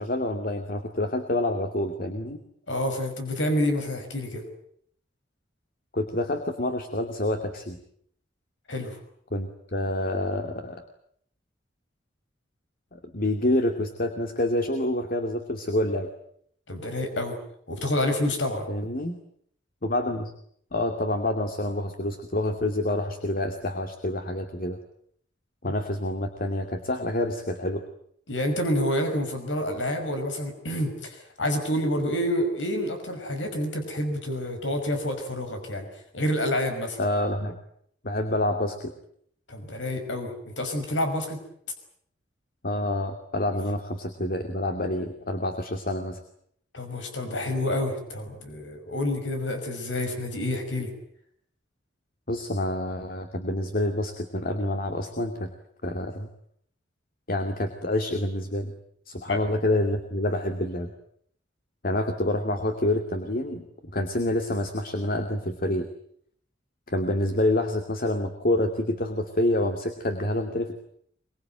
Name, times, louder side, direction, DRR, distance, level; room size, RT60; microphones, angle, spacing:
voice 1, 0.0-2.4 5.9-7.8 9.3-10.8 12.9-16.1 18.7-19.2 19.8-20.3 20.7-24.8 25.6-27.9 37.0-37.6 38.0-38.9 42.6-46.2 52.3-55.5 55.8-56.3 57.3-58.7 59.1-60.9 61.8-63.7 63.9-65.9 66.9-70.8, left 1 dB, 50° left, 6 dB, 2.5 m, -27 dB
voice 2, 2.7-4.4 8.7-9.0 16.7-17.4 17.7-18.7 25.6-25.7 28.3-35.9 36.1-37.0 39.5-41.4 46.7-50.9 59.3-59.4, left 1 dB, 85° left, 6 dB, 5.8 m, -28 dB
24.0 x 23.0 x 9.2 m, 0.66 s
head